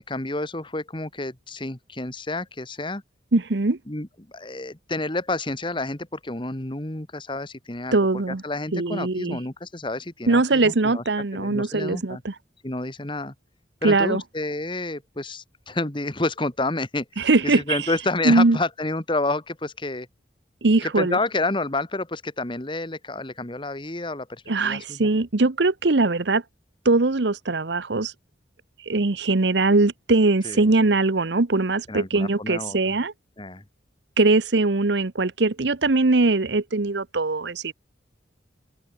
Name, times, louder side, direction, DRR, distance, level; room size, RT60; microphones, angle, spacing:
voice 1, 0.0-3.0 3.9-8.0 8.3-11.0 11.3-12.2 12.6-13.3 13.8-20.1 20.8-25.1 30.4-30.7 31.9-32.9 33.4-33.6, left 2 dB, 25° left, 1.8 m, -29 dB
voice 2, 3.3-3.8 7.9-8.4 8.7-9.4 10.3-12.3 13.8-14.2 17.2-17.8 18.2-18.6 20.6-21.2 24.5-26.4 26.8-28.1 28.9-33.1 34.2-37.7, right 3 dB, 70° right, 1.0 m, -21 dB
open air
head